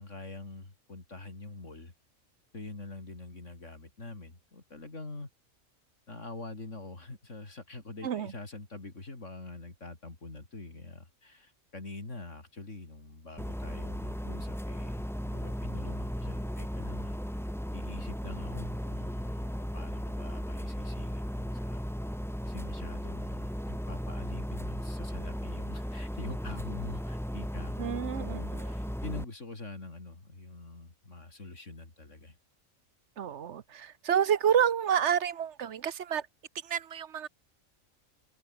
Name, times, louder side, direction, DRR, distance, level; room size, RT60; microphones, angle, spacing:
voice 1, 0.0-1.9 2.5-5.3 6.1-17.2 17.7-21.9 22.4-32.4, left 2 dB, 65° left, 4.3 m, -45 dB
sound 1, 13.4-29.2, equal, ahead, 1.8 m, -36 dB
voice 2, 27.8-28.7 33.2-36.3 36.6-37.3, right 8 dB, 60° right, 1.1 m, -29 dB
omnidirectional pair, 1.4 m